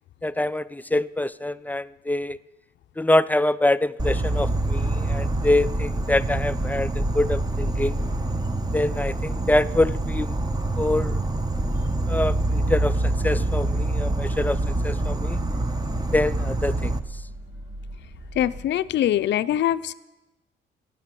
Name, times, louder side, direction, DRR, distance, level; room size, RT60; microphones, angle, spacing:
voice 1, 0.2-2.4 3.0-8.0 8.7-10.4 10.8-11.2 12.1-14.6 14.8-15.4 16.1-16.9, left 1 dB, 10° left, 16 dB, 0.4 m, -25 dB
Insect, 4.0-17.0, right 2 dB, 20° right, 1.0 m, -26 dB
sound 1, 4.7-18.7, right 1 dB, 75° right, 4.0 m, -39 dB
voice 2, 18.4-19.9, left 11 dB, 65° left, 12 dB, 0.5 m, -23 dB
14.5 x 9.1 x 7.6 m, 1.0 s
cardioid pair, 90°, 20 cm